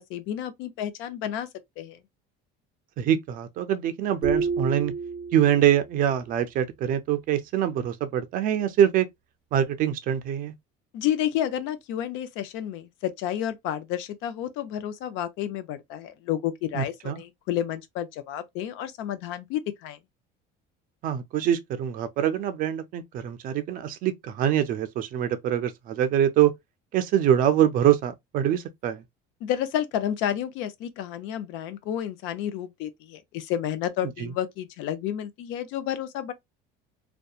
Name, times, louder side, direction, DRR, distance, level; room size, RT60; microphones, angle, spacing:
voice 1, 0.0-1.5 1.8-2.0 10.9-20.0 29.4-36.3, left 11 dB, 70° left, 0.5 m, -30 dB
voice 2, 3.0-4.9 5.3-9.1 9.5-10.5 16.7-17.2 21.0-26.5 26.9-29.0 34.2-34.3, right 10 dB, 45° right, 0.4 m, -24 dB
sound 1, 4.2-5.9, right 5 dB, 5° right, 0.9 m, -29 dB
2.7 x 2.2 x 2.3 m
cardioid pair, 170°, 21 cm